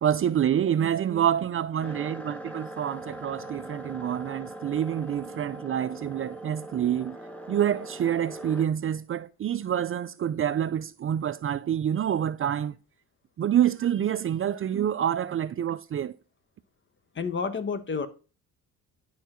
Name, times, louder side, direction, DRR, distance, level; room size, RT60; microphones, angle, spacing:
voice 1, 0.0-7.2 7.5-12.8 13.4-16.1, right 10 dB, 40° right, 0.5 m, -27 dB
sound 1, 1.8-8.7, right 1 dB, 5° left, 1.2 m, -41 dB
voice 2, 17.1-18.1, left 5 dB, 35° left, 1.1 m, -29 dB
10.0 x 4.6 x 3.8 m
cardioid pair, 95°, 33 cm